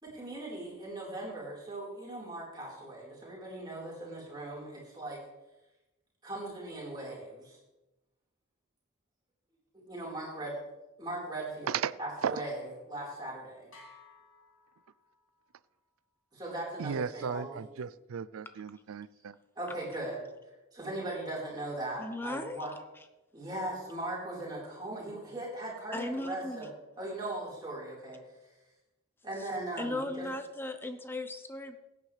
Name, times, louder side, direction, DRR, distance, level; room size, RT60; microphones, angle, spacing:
voice 1, 0.0-5.2 6.2-7.6 9.9-10.5 11.0-13.6 16.3-17.6 19.6-20.3 20.7-22.7 23.3-26.7 27.0-28.2 29.2-30.3, right 1 dB, 20° right, -5 dB, 4.3 m, -39 dB
sound 1, 13.7-15.5, left 3 dB, 65° left, 3.1 m, -57 dB
voice 2, 16.8-19.4, right 7 dB, 85° right, 18 dB, 0.4 m, -35 dB
voice 3, 22.0-22.6 25.9-26.7 29.4-29.5 29.8-31.8, left 2 dB, 10° left, 8 dB, 0.7 m, -37 dB
16.5 x 9.4 x 3.3 m, 1.0 s
head